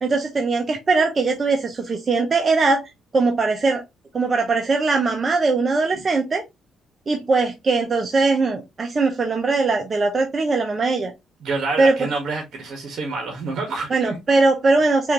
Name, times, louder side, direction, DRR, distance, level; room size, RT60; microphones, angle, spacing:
voice 1, 0.0-3.8 4.1-6.4 7.1-11.1 11.8-12.0 13.9-15.1, right 3 dB, 35° right, 0.7 m, -20 dB
voice 2, 11.4-14.1, right 3 dB, 60° right, 1.3 m, -27 dB
4.8 x 2.5 x 2.9 m
cardioid pair, 90°, 0 cm